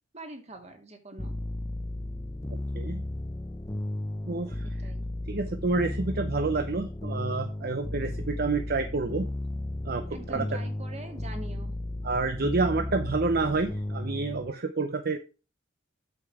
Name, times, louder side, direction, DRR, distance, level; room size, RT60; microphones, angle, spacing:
voice 1, 0.1-1.4 4.6-5.1 10.1-11.7, right 2 dB, 35° right, 5 dB, 1.9 m, -44 dB
sound 1, 1.2-14.5, left 1 dB, 15° left, 0.6 m, -34 dB
voice 2, 4.3-4.7 5.3-9.3 9.8-10.4 12.0-15.2, right 3 dB, 50° right, 8 dB, 0.7 m, -29 dB
8.5 x 6.8 x 4.8 m, 0.33 s
head